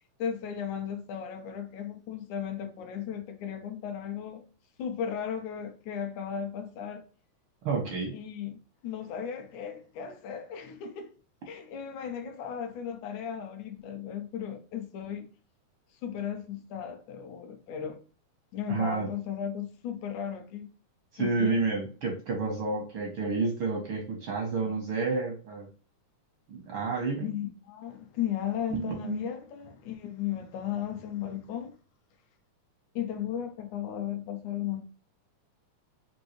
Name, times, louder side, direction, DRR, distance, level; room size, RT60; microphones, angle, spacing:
voice 1, 0.2-4.4 4.8-7.0 8.1-8.6 8.8-11.1 11.5-15.3 16.0-18.0 18.5-20.7 21.2-21.7 27.2-31.8 33.0-34.8, left 9 dB, 80° left, 2.0 m, -35 dB
voice 2, 7.6-8.1 18.7-19.1 21.1-25.7 26.5-27.3 28.7-29.3, right 4 dB, 75° right, 1.2 m, -30 dB
5.2 x 2.6 x 3.0 m
omnidirectional pair, 3.6 m